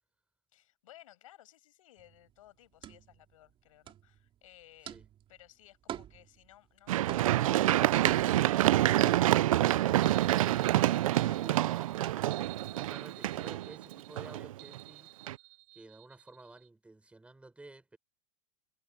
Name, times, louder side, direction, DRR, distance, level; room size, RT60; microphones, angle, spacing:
voice 1, 0.5-5.0 5.3-9.6 10.0-12.5, left 14 dB, 80° left, 7.6 m, -58 dB
sound 1, 2.0-10.7 11.0-12.9, right 10 dB, 30° right, 3.0 m, -45 dB
Run, 6.9-14.8 15.3-15.4, right 14 dB, 90° right, 0.5 m, -27 dB
sound 2, 10.0-16.7, right 22 dB, 65° right, 1.1 m, -52 dB
voice 2, 12.7-15.2 15.7-18.0, right 2 dB, 5° right, 4.5 m, -52 dB
supercardioid pair, 130°, 17 cm